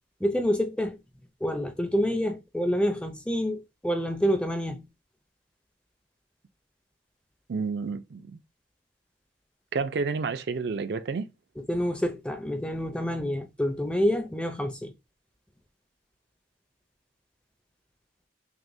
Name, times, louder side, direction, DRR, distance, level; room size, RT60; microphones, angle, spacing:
voice 1, 0.2-1.0 1.4-4.8 11.7-14.9, equal, 5° left, 0.4 m, -27 dB
voice 2, 7.5-8.4 9.7-11.3, right 4 dB, 60° right, 0.4 m, -30 dB
6.0 x 2.1 x 2.6 m
head